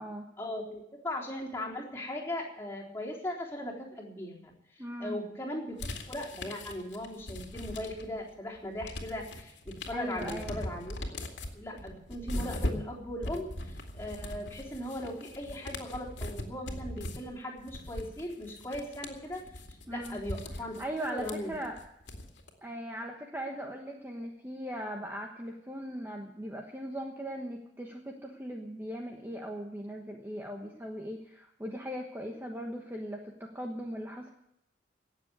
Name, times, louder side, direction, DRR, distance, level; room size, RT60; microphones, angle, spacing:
voice 1, 0.4-4.5 5.0-11.3 11.5-19.4 19.9-21.5, left 1 dB, 15° left, -4 dB, 3.8 m, -38 dB
voice 2, 4.8-5.2 9.9-10.6 19.9-20.2 20.8-21.7 22.6-34.3, equal, 10° right, 1 dB, 1.2 m, -39 dB
sound 1, 5.8-8.2 8.6-22.5, left 1 dB, 75° left, 2.2 m, -40 dB
18.0 x 7.4 x 9.6 m, 0.79 s
head